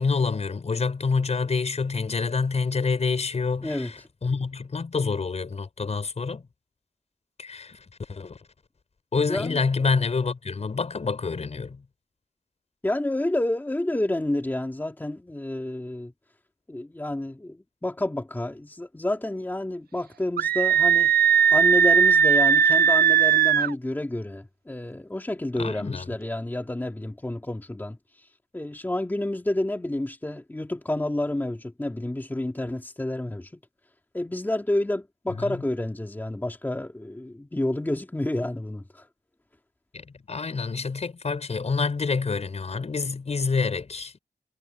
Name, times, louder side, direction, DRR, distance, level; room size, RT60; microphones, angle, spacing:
voice 1, 0.0-6.5 7.4-7.8 8.1-8.4 9.1-11.8 25.6-26.1 35.3-35.6 39.9-44.1, left 4 dB, 45° left, 5.5 m, -27 dB
voice 2, 9.2-9.6 12.8-16.1 16.7-21.1 21.5-28.0 28.5-33.6 34.1-39.1, left 1 dB, 10° left, 2.6 m, -29 dB
Screaming, 20.4-23.7, right 7 dB, 80° right, 0.6 m, -18 dB
wide cardioid pair, 150°, 16 cm